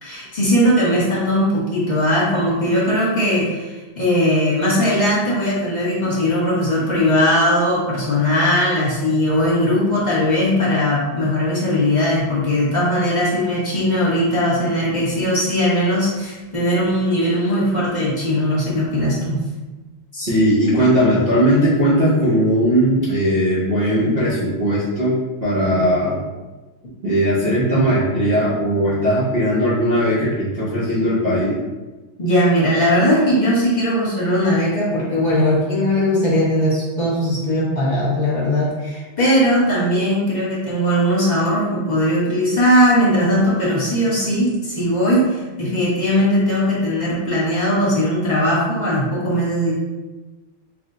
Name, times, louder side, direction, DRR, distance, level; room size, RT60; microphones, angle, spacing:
voice 1, 0.0-19.4 32.2-49.7, equal, 40° left, -8 dB, 0.6 m, -19 dB
voice 2, 20.1-26.2 27.0-31.5, equal, 55° right, -9 dB, 0.6 m, -18 dB
4.7 x 2.1 x 3.7 m, 1.2 s
omnidirectional pair, 2.3 m